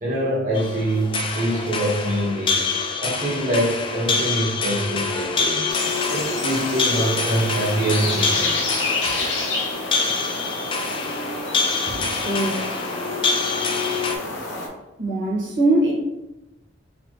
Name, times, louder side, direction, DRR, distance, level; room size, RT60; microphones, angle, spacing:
voice 1, 0.0-2.7 3.0-5.6 6.1-8.5 11.9-12.0 12.4-12.5 14.6-14.7, right 1 dB, 40° right, -6 dB, 0.9 m, -24 dB
sound 1, 0.5-14.2, left 4 dB, 25° left, 0.4 m, -26 dB
sound 2, 5.7-14.7, left 2 dB, 65° left, 0.8 m, -29 dB
voice 2, 12.1-12.7 15.0-15.9, right 2 dB, 75° right, -5 dB, 1.4 m, -21 dB
4.0 x 2.8 x 3.1 m, 0.98 s
head